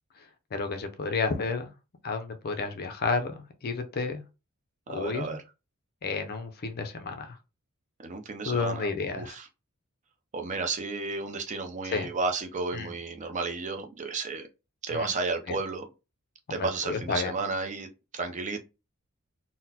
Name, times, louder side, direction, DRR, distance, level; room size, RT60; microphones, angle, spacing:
voice 1, 0.5-1.7 2.0-4.2 4.9-5.3 6.0-7.4 8.4-9.4 11.8-12.1 12.7-12.9 14.9-15.1 15.5-15.6 16.5-17.4, left 4 dB, 45° left, 0.5 m, -31 dB
voice 2, 4.9-5.4 8.0-8.8 9.2-9.5 10.3-14.5 14.8-15.8 16.5-17.9 18.1-18.6, right 3 dB, 35° right, 0.5 m, -32 dB
3.9 x 2.1 x 2.7 m
head